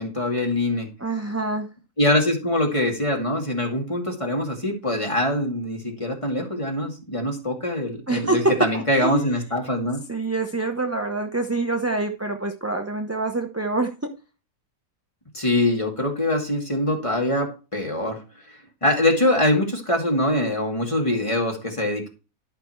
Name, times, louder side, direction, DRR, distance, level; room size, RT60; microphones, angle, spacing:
voice 1, 0.0-0.9 2.0-10.0 15.3-18.2 18.8-22.1, left 1 dB, 20° left, 1 dB, 2.5 m, -23 dB
voice 2, 1.0-1.7 8.1-9.2 10.1-14.1, right 2 dB, 15° right, 4 dB, 0.6 m, -26 dB
12.0 x 5.9 x 4.5 m, 0.32 s
omnidirectional pair, 1.6 m